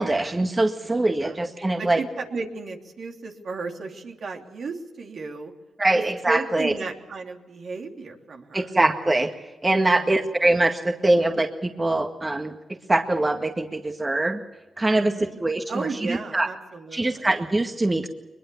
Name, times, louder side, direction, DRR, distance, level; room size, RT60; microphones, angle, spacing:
voice 1, 0.0-2.0 5.8-6.7 8.5-9.3 9.6-12.5 12.9-14.4 14.8-15.1 15.4-16.5 16.9-18.1, right 2 dB, 25° right, 5 dB, 1.9 m, -23 dB
voice 2, 1.8-5.5 5.9-8.7 9.8-10.2 14.9-15.4 15.7-17.3, right 4 dB, 65° right, 2 dB, 3.1 m, -34 dB
22.5 x 21.5 x 7.0 m, 1.1 s
supercardioid pair, 50°, 0 cm